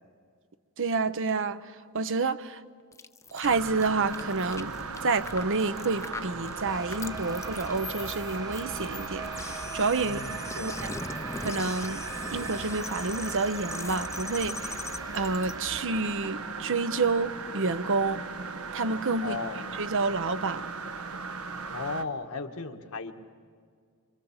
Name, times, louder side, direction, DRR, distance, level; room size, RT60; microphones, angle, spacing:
voice 1, 0.8-2.6 3.3-4.7 5.0-10.9 11.4-12.0 12.3-14.8 15.1-18.2 18.7-19.4 19.7-20.7, right 4 dB, 60° right, 0.9 m, -29 dB
sound 1, 2.9-15.5, left 3 dB, 15° left, 0.6 m, -41 dB
sound 2, 3.4-22.0, right 4 dB, 80° right, 1.3 m, -37 dB
sound 3, 6.6-15.8, right 1 dB, 15° right, 1.1 m, -45 dB
voice 2, 10.0-10.8 19.2-19.7 21.7-23.1, left 3 dB, 75° left, 1.6 m, -36 dB
26.5 x 24.5 x 7.2 m
head